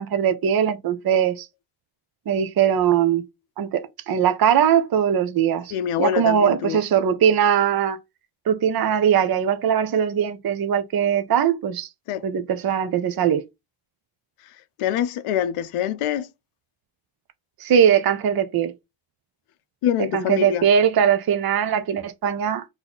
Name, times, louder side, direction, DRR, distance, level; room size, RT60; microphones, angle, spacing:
voice 1, 0.0-1.5 2.3-3.2 3.6-8.0 8.5-11.9 12.2-13.4 17.6-18.7 20.0-22.7, right 8 dB, 45° right, 0.7 m, -20 dB
voice 2, 5.7-6.8 12.1-12.3 14.8-16.3 19.8-20.7, left 10 dB, 85° left, 0.7 m, -25 dB
3.9 x 2.8 x 4.0 m
cardioid pair, 80°, 49 cm